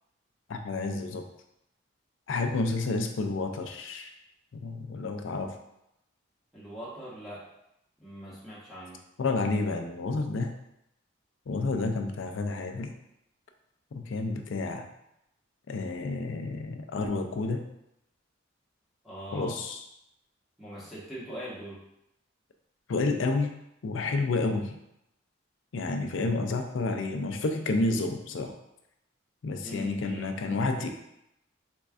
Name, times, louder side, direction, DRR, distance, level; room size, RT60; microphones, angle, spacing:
voice 1, 0.5-1.2 2.3-4.1 4.5-5.5 9.2-10.5 11.5-12.9 13.9-14.9 15.7-17.7 19.3-19.8 22.9-23.5 23.8-24.8 25.7-28.5 29.4-30.9, left 3 dB, 75° left, 5 dB, 0.4 m, -30 dB
voice 2, 6.5-7.4 8.0-9.0 19.0-19.6 20.6-21.8 29.6-30.3, equal, ahead, -10 dB, 1.1 m, -41 dB
3.7 x 3.2 x 2.4 m, 0.81 s
head